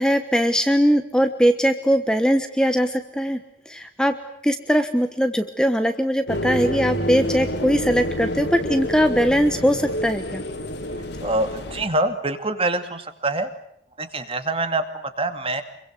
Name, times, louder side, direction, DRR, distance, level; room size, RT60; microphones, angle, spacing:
voice 1, 0.0-4.2 4.4-10.4, equal, 5° left, 7 dB, 1.2 m, -20 dB
sound 1, 6.3-11.9, equal, 70° left, 3.3 m, -28 dB
voice 2, 11.2-13.5 14.0-15.6, right 2 dB, 30° right, 8 dB, 2.4 m, -25 dB
26.5 x 23.5 x 8.1 m, 0.71 s
head